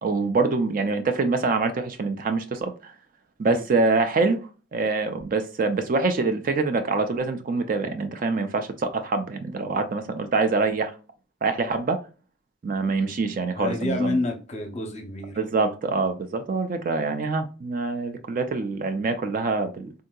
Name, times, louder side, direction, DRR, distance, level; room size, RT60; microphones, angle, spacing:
voice 1, 0.0-2.9 3.4-4.4 4.7-10.9 11.4-12.0 12.6-14.2 15.4-19.9, right 3 dB, 40° right, 0.3 m, -25 dB
voice 2, 13.6-15.4 16.8-16.9, left 2 dB, 30° left, 0.6 m, -29 dB
3.7 x 2.6 x 2.2 m
head